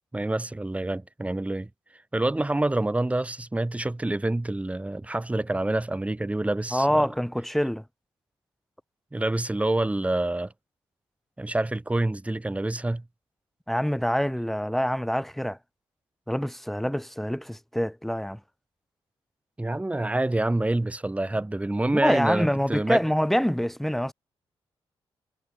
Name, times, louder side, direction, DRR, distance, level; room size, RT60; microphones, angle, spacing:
voice 1, 0.1-1.7 2.1-7.1 9.1-10.5 11.4-13.0 19.6-23.0, right 2 dB, 15° right, 2.5 m, -27 dB
voice 2, 6.7-7.8 13.7-15.6 16.3-18.4 21.9-24.1, equal, ahead, 1.3 m, -25 dB
cardioid pair, 90°, 10 cm